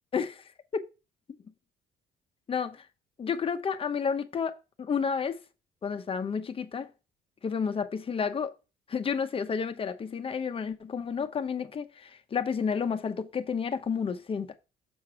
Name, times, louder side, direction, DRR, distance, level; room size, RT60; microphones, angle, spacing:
voice 1, 0.1-0.4 0.7-0.8 2.5-2.9 3.2-5.4 5.8-6.9 7.4-8.5 8.9-14.5, left 6 dB, 35° left, 0.9 m, -31 dB
7.2 x 4.8 x 4.8 m
cardioid pair, 110°, 17 cm